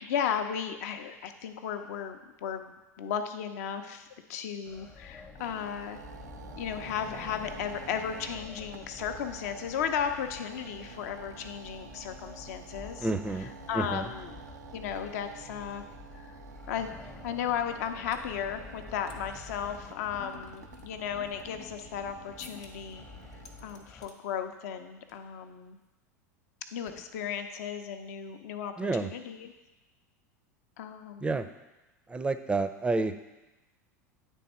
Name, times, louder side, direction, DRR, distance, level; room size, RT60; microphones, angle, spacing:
voice 1, 0.0-6.0 6.6-13.1 13.7-14.3 14.7-15.8 16.1-16.3 16.7-16.9 17.2-23.1 23.6-25.8 26.7-28.7 29.0-29.5 30.8-31.3, left 8 dB, 65° left, 7 dB, 0.5 m, -35 dB
sound 1, 4.6-24.1, left 4 dB, 20° left, 0.7 m, -49 dB
sound 2, 5.4-23.8, right 6 dB, 80° right, 0.4 m, -49 dB
voice 2, 13.0-13.5 13.7-14.1 28.8-29.1 31.2-31.5 32.1-33.2, right 3 dB, 10° right, 10 dB, 0.4 m, -29 dB
sound 3, 15.0-15.1 15.3-18.3 18.7-19.2 19.4-19.6 20.1-22.0 22.4-23.0 23.3-24.2 24.5-24.8 25.1-25.3 25.7-25.9 26.9-27.6, left 3 dB, 80° left, 1.0 m, -57 dB
9.2 x 3.5 x 4.2 m, 1.0 s
hypercardioid pair, 85°, 9 cm